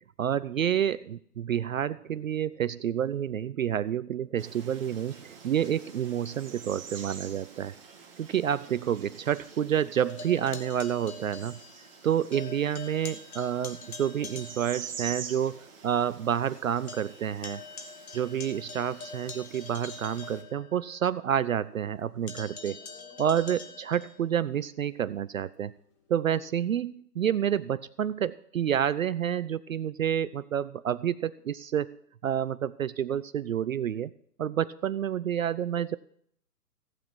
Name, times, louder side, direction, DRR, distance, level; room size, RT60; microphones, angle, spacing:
voice 1, 0.2-7.7 8.2-11.6 12.0-17.6 18.1-22.8 23.2-25.7 26.1-32.0 32.2-34.1 34.4-36.0, right 9 dB, 60° right, 17 dB, 0.5 m, -29 dB
sound 1, 4.4-20.4, right 6 dB, 35° right, 2.1 m, -47 dB
sound 2, 10.0-12.0 12.3-15.0 15.4-15.5 15.9-16.0 16.3-21.1 22.3-24.2, left 4 dB, 60° left, 2.3 m, -44 dB
Guitar, 22.0-22.1 22.6-26.7, equal, 25° left, 6.5 m, -59 dB
15.5 x 9.4 x 4.5 m, 0.65 s
figure-of-eight pair, 135°, 47 cm